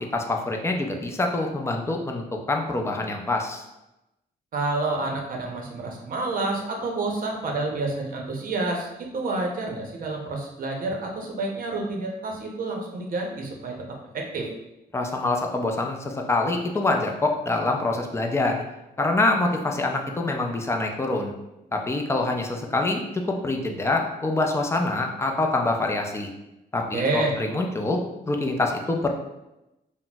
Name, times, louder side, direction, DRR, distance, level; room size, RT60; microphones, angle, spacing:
voice 1, 0.1-3.6 14.9-18.6 19.0-21.3 21.7-23.0 23.3-26.3 26.7-28.0 28.3-29.1, left 2 dB, 15° left, 2 dB, 0.3 m, -25 dB
voice 2, 4.5-8.9 9.1-14.5 26.9-27.3, right 3 dB, 55° right, 1 dB, 0.6 m, -29 dB
4.0 x 2.0 x 2.2 m, 0.93 s
wide cardioid pair, 145°, 17 cm